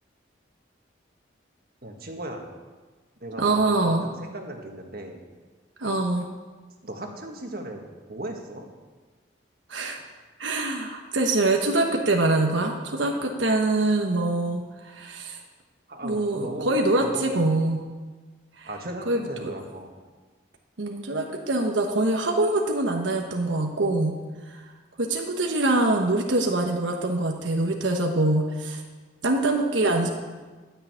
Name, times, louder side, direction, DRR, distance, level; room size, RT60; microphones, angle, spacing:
voice 1, 1.8-2.4 3.2-5.2 6.8-8.7 15.9-17.4 18.7-19.9, right 1 dB, 50° right, 2 dB, 1.7 m, -37 dB
voice 2, 3.4-4.1 5.8-6.3 9.7-10.0 10.4-15.4 16.0-17.8 18.6-18.7 19.1-19.5 20.8-24.1 24.5-24.6 25.0-28.8 29.2-30.1, right 2 dB, 85° right, 2 dB, 1.2 m, -24 dB
12.5 x 6.8 x 9.1 m, 1.4 s
head